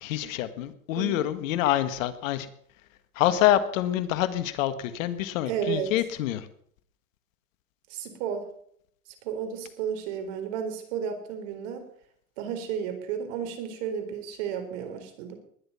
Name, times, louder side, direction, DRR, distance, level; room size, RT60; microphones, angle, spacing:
voice 1, 0.0-2.5 3.2-6.5, left 12 dB, 70° left, 12 dB, 1.8 m, -26 dB
voice 2, 1.0-1.3 5.5-5.9 7.9-8.5 9.2-11.9 12.4-15.4, right 8 dB, 60° right, 8 dB, 4.1 m, -32 dB
20.0 x 10.5 x 5.7 m, 0.64 s
supercardioid pair, 120°, 41 cm